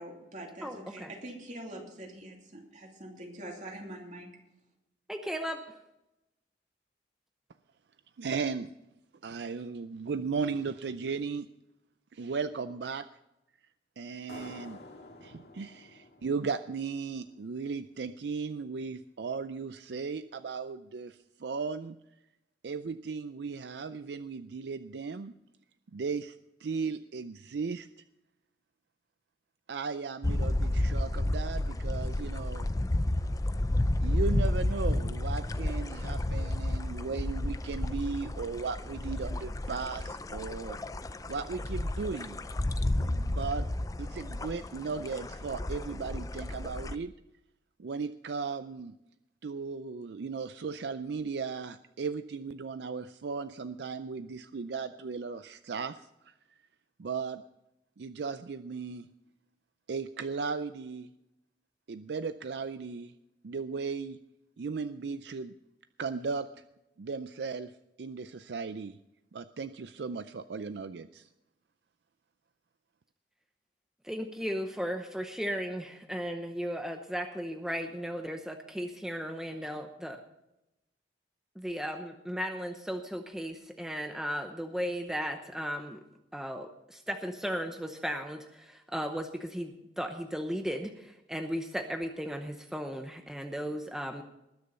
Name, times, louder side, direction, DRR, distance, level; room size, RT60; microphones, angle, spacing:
voice 1, 0.0-4.3, right 1 dB, 45° right, 0 dB, 2.9 m, -44 dB
voice 2, 0.6-1.1 5.1-5.8 74.0-80.2 81.6-86.0 86.3-94.2, equal, 5° right, 5 dB, 0.8 m, -36 dB
voice 3, 8.2-8.7 9.2-11.5 12.1-13.1 14.0-14.8 15.2-22.0 22.6-25.3 25.9-27.9 29.7-32.7 34.0-40.8 41.3-42.4 42.9-43.7 44.0-47.1 47.8-48.9 49.4-56.6 57.0-57.4 58.0-59.1 59.9-61.1 61.9-63.1 63.4-64.2 64.6-65.5 66.0-66.5 67.0-67.7 68.0-69.0 69.3-71.3, right 5 dB, 65° right, 12 dB, 0.4 m, -36 dB
sound 1, 14.3-17.6, left 2 dB, 60° left, 2.0 m, -50 dB
sound 2, 30.2-46.9, left 1 dB, 20° left, 0.4 m, -31 dB
20.0 x 6.8 x 5.5 m, 0.89 s
head